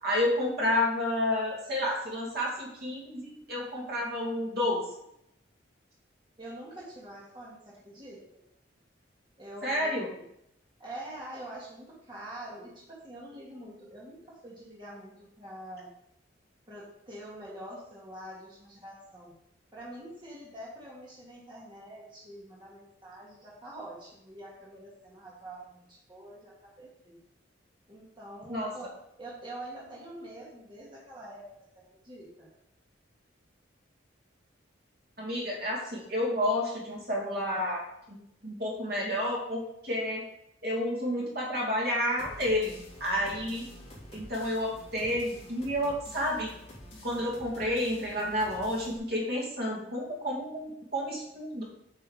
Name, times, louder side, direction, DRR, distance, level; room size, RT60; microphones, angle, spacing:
voice 1, 0.0-4.9 9.6-10.1 28.5-28.7 35.2-38.2 38.4-40.3 40.6-43.7 44.1-46.5 47.0-51.6, left 1 dB, 50° right, -3 dB, 2.6 m, -30 dB
voice 2, 6.4-8.2 9.4-10.3 10.8-15.9 16.7-19.3 19.7-27.2 27.9-28.9 29.2-31.5 31.7-32.5, right 1 dB, 25° right, -6 dB, 2.1 m, -45 dB
sound 1, 42.2-49.0, equal, 30° left, 3.3 m, -48 dB
8.0 x 5.6 x 5.0 m, 0.78 s
head